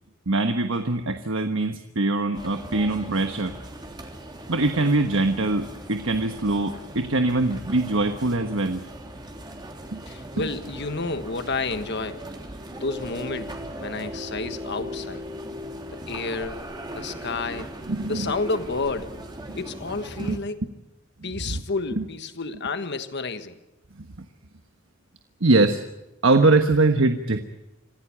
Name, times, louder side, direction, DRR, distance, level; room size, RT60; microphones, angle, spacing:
voice 1, 0.3-3.6 4.5-8.9 9.9-10.0 10.4-10.5 17.9-18.3 19.5-19.6 20.2-20.4 21.2-21.6 22.0-22.1 24.0-24.1 25.4-25.8 26.2-27.4, right 2 dB, 70° right, 6 dB, 1.3 m, -23 dB
sound 1, 2.3-20.4, equal, 20° right, 3.2 m, -38 dB
voice 2, 10.1-12.3 12.8-15.2 15.9-16.6 16.9-17.7 18.1-19.2 19.5-20.6 21.2-23.6, left 3 dB, 55° left, 10 dB, 1.5 m, -30 dB
26.5 x 16.5 x 8.6 m, 0.98 s
head